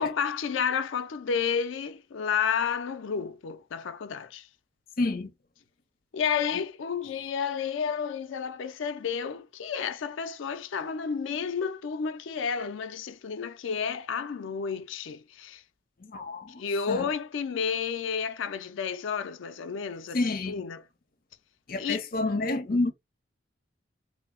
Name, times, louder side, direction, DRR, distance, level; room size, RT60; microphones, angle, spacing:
voice 1, 0.0-4.5 6.1-15.6 16.6-20.2 20.5-20.8 21.8-22.0, left 6 dB, 90° left, 0.4 m, -31 dB
voice 2, 5.0-5.3 16.0-17.1 20.1-20.6 21.7-22.9, left 2 dB, 50° left, 0.7 m, -29 dB
3.1 x 2.0 x 3.6 m
head